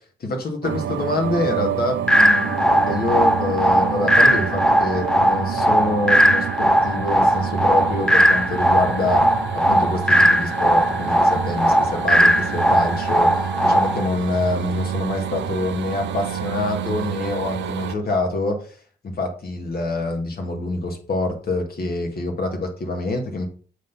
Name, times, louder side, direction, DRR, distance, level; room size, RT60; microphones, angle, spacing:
voice 1, 0.2-9.2 9.5-18.8 19.0-23.5, left 2 dB, 55° left, 4 dB, 2.1 m, -26 dB
sound 1, 0.6-18.0, right 9 dB, 75° right, 0.8 m, -29 dB
sound 2, 2.1-14.1, equal, 5° left, 0.7 m, -18 dB
7.3 x 4.0 x 5.5 m, 0.42 s
supercardioid pair, 60°, 19 cm